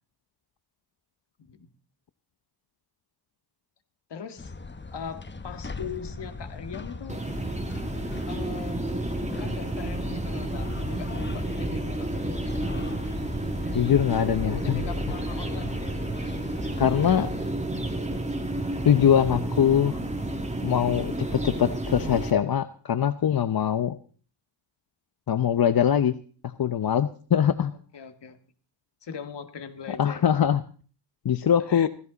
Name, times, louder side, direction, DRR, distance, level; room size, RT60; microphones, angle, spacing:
voice 1, 4.1-4.5 4.9-7.2 8.3-9.0 9.4-12.1 14.5-15.9 27.7-28.4 29.0-30.3 31.7-31.9, left 6 dB, 70° left, 9 dB, 2.0 m, -40 dB
sound 1, 4.4-17.5, left 3 dB, 25° left, 1.2 m, -39 dB
sound 2, 7.1-22.3, right 1 dB, 15° right, 2.5 m, -31 dB
voice 2, 13.7-14.8 16.8-17.3 18.8-20.0 20.6-23.9 25.3-26.2 26.4-27.7 30.0-30.6 31.2-31.9, left 9 dB, 55° left, 11 dB, 0.9 m, -22 dB
16.5 x 15.5 x 4.1 m, 0.42 s
cardioid pair, 75°, 43 cm